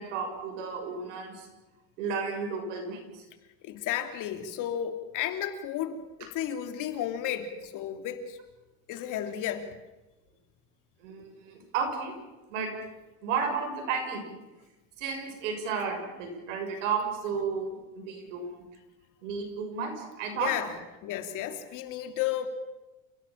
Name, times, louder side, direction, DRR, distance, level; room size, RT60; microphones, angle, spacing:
voice 1, 0.0-1.5 2.0-3.2 11.0-12.2 12.5-12.7 13.2-14.3 15.0-17.7 17.9-18.5 19.2-20.5, right 5 dB, 90° right, 4 dB, 6.7 m, -32 dB
voice 2, 3.6-8.4 8.9-9.7 20.3-20.7 21.0-22.5, left 11 dB, 55° left, 7 dB, 3.1 m, -33 dB
29.0 x 16.5 x 7.5 m, 1.1 s
supercardioid pair, 120°, 37 cm